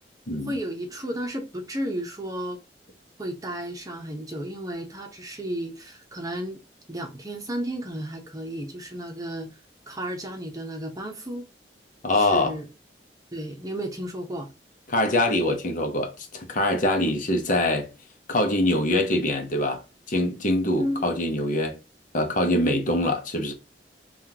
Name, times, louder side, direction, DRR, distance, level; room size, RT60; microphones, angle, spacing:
voice 1, 0.5-2.6 3.2-6.6 6.9-9.5 9.9-11.5 12.1-12.6 13.3-14.5 17.0-17.2 20.8-21.1 22.6-22.8, equal, 20° right, 0.9 m, -33 dB
voice 2, 12.0-12.6 14.9-17.9 18.3-19.8 20.1-21.8 22.1-23.5, left 1 dB, 50° left, 0.9 m, -24 dB
5.6 x 2.5 x 2.9 m
head